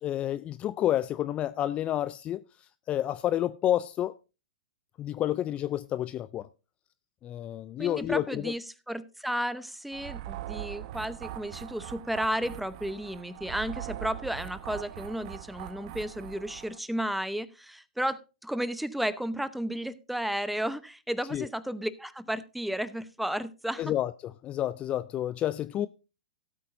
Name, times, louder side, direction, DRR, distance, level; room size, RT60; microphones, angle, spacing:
voice 1, 0.0-2.4 2.9-4.2 5.0-6.5 7.2-8.5 21.3-21.5 23.8-25.9, left 12 dB, 25° left, 0.4 m, -29 dB
voice 2, 7.8-23.9, equal, ahead, 0.8 m, -33 dB
sound 1, 9.9-16.8, right 14 dB, 50° right, 1.1 m, -41 dB
17.0 x 8.6 x 2.6 m
hypercardioid pair, 115°, 4 cm